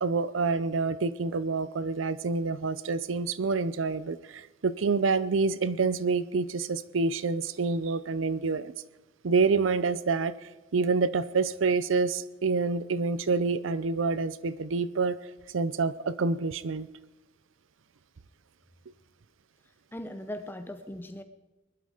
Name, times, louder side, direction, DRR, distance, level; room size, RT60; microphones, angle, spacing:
voice 1, 0.0-8.7 9.2-16.9, right 4 dB, 75° right, 0.6 m, -27 dB
voice 2, 19.9-21.2, left 1 dB, 10° left, 0.7 m, -39 dB
20.5 x 12.0 x 5.0 m
head